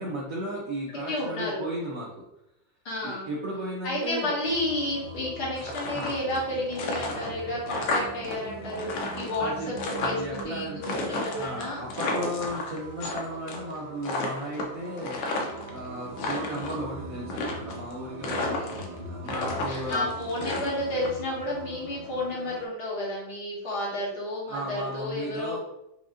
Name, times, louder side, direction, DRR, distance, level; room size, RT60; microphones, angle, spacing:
voice 1, 0.0-2.2 3.0-4.3 5.9-6.2 9.4-20.1 24.5-25.6, right 1 dB, 65° right, -4 dB, 0.8 m, -35 dB
voice 2, 1.1-1.6 2.8-3.3 3.8-10.2 10.4-11.8 15.3-15.8 18.6-25.6, left 1 dB, 60° left, -5 dB, 1.5 m, -32 dB
sound 1, 4.4-22.7, right 2 dB, 85° right, 1.5 m, -42 dB
sound 2, 5.6-6.4 6.7-8.3 8.6-10.4 10.8-13.2 13.5-13.8 14.0-15.7 16.1-16.8 17.3-17.9 18.2-19.0 19.3-21.1, left 2 dB, 80° left, 1.4 m, -32 dB
5.0 x 2.4 x 2.5 m, 0.84 s
omnidirectional pair, 2.1 m